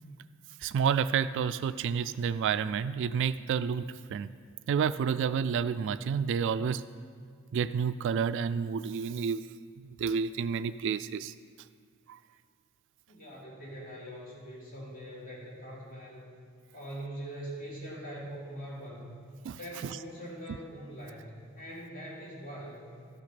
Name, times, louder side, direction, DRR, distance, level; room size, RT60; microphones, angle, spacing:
voice 1, 0.6-4.3 4.7-6.8 7.5-9.4 10.0-11.3 12.1-12.2 19.4-19.6, right 7 dB, 60° right, 14 dB, 0.3 m, -29 dB
voice 2, 13.1-16.3 16.7-19.1 19.5-22.9, right 1 dB, 40° left, -4 dB, 2.7 m, -43 dB
13.5 x 6.1 x 5.8 m, 2.1 s
head